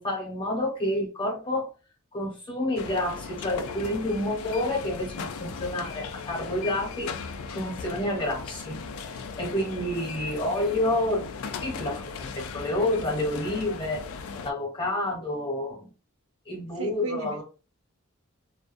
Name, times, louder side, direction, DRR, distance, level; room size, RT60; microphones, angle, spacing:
voice 1, 0.0-1.7 2.1-7.1 7.5-8.8 9.4-11.3 11.6-14.0 14.4-15.9 16.5-17.4, left 1 dB, 25° left, 0.9 m, -29 dB
sound 1, 2.8-14.5, left 5 dB, 70° left, 0.3 m, -38 dB
voice 2, 16.8-17.4, right 3 dB, 85° right, 0.6 m, -35 dB
2.3 x 2.2 x 2.5 m
head